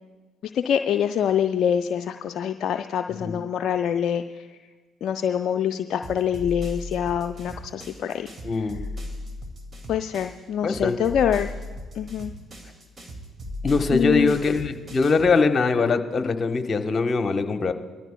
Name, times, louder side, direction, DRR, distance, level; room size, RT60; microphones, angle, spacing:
voice 1, 0.5-4.5 5.0-8.7 9.9-11.5 12.0-12.3 13.9-14.3, left 8 dB, 60° left, 7 dB, 0.4 m, -25 dB
sound 1, 6.0-10.4 10.7-15.4, left 1 dB, 35° right, 2.2 m, -37 dB
voice 2, 8.4-8.8 10.6-11.0 13.6-17.7, left 4 dB, 40° left, 7 dB, 1.0 m, -22 dB
21.0 x 13.5 x 2.2 m, 1.3 s
hypercardioid pair, 50°, 0 cm